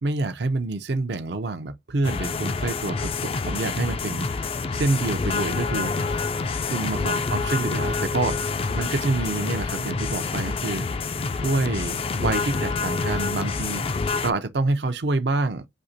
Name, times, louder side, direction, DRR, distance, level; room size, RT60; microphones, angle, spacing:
voice 1, 0.0-4.3 4.7-5.9 6.7-10.9 11.4-13.9 14.2-15.6, right 2 dB, 70° right, 0.6 m, -27 dB
sound 1, 2.0-14.3, left 4 dB, 30° left, 0.3 m, -27 dB
6.3 x 2.8 x 2.7 m
head